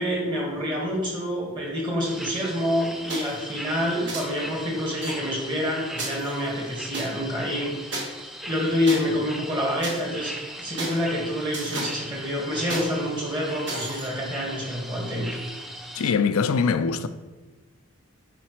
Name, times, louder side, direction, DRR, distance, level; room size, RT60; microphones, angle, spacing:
voice 1, 0.0-15.3, equal, 20° right, 1.6 m, -27 dB
sound 1, 2.0-16.1, equal, ahead, 0.4 m, -39 dB
sound 2, 3.1-3.4 4.1-4.2 5.0-5.1 6.0-7.1 7.9-8.0 8.9-9.0 9.8-10.0 10.8-11.0 11.5-11.9 12.7-12.9 13.7-14.1, right 2 dB, 55° right, 1.6 m, -32 dB
voice 2, 15.9-17.1, left 5 dB, 85° left, 0.4 m, -22 dB
8.7 x 4.9 x 3.1 m
head